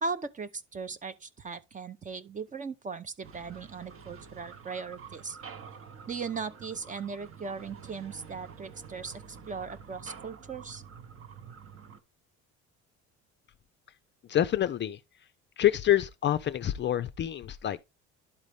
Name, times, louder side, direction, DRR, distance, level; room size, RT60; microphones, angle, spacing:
voice 1, 0.0-5.4 6.1-10.8, right 4 dB, 25° right, 0.6 m, -38 dB
sound 1, 3.2-12.0, right 6 dB, 45° right, 1.0 m, -48 dB
voice 2, 14.3-15.0 15.6-17.9, left 12 dB, 35° left, 0.4 m, -27 dB
11.5 x 4.0 x 3.3 m
cardioid pair, 105°, 31 cm